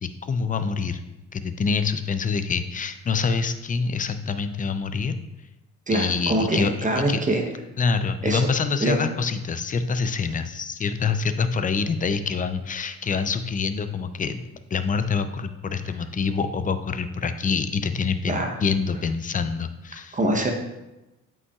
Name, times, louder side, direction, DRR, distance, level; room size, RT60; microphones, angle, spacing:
voice 1, 0.0-1.0 1.3-5.1 5.9-7.2 7.8-14.4 14.7-20.2, left 5 dB, 25° left, 10 dB, 0.5 m, -26 dB
voice 2, 5.9-7.4 8.2-8.5 8.8-9.0 18.3-18.5 20.1-20.5, right 1 dB, 25° right, 2 dB, 0.9 m, -23 dB
8.1 x 5.4 x 2.4 m, 0.99 s
cardioid pair, 90°, 30 cm